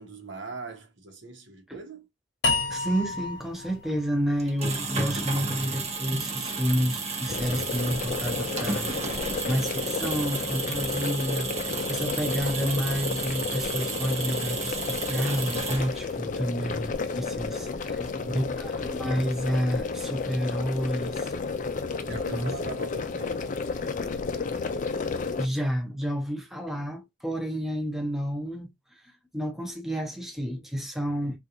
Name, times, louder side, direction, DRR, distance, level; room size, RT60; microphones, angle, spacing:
voice 1, 0.0-2.1 17.9-19.0 22.0-23.6, right 3 dB, 70° right, 0.9 m, -41 dB
sound 1, 2.4-5.6, left 3 dB, 60° left, 0.8 m, -31 dB
voice 2, 2.7-21.3 22.1-22.5 25.4-31.4, equal, ahead, 0.6 m, -30 dB
sound 2, 4.4-16.2, right 4 dB, 35° right, 0.8 m, -33 dB
sound 3, 7.3-25.5, left 4 dB, 45° left, 0.4 m, -32 dB
3.8 x 2.4 x 2.8 m
head